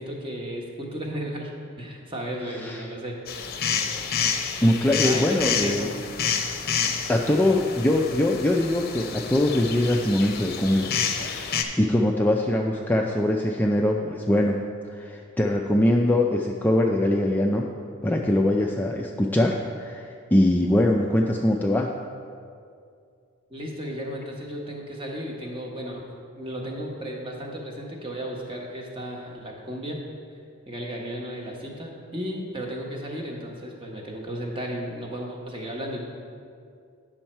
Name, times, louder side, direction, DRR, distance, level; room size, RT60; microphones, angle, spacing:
voice 1, 0.0-1.5 1.8-3.2 5.0-5.9 23.5-26.0 26.4-30.0 30.7-36.0, equal, 25° right, -1 dB, 1.2 m, -34 dB
sound 1, 3.3-11.6, left 6 dB, 50° left, 0.7 m, -29 dB
voice 2, 4.6-5.9 7.1-10.9 11.2-14.6 14.9-17.7 18.0-21.9, left 1 dB, 10° left, 0 dB, 0.4 m, -22 dB
9.2 x 6.3 x 4.4 m, 2.3 s
head